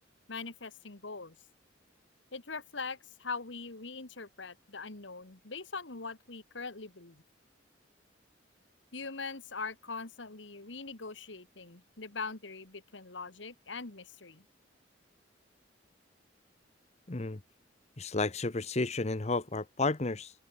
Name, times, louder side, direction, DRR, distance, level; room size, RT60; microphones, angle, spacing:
voice 1, 0.3-1.4 2.3-7.2 8.9-14.5, left 4 dB, 75° left, 2.0 m, -42 dB
voice 2, 17.1-17.4 18.0-20.3, left 3 dB, 35° left, 1.0 m, -32 dB
open air
head